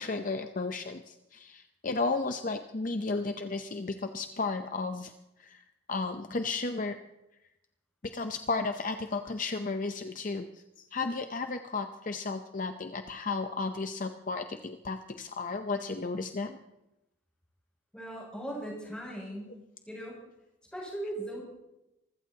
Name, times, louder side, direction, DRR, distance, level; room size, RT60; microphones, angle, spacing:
voice 1, 0.0-5.1 5.4-5.6 5.9-7.0 8.0-16.6, left 3 dB, 40° left, 7 dB, 0.6 m, -33 dB
voice 2, 17.9-19.5 19.9-20.2 20.7-21.4, right 1 dB, 5° left, -3 dB, 6.9 m, -38 dB
26.0 x 15.5 x 2.8 m, 0.91 s
head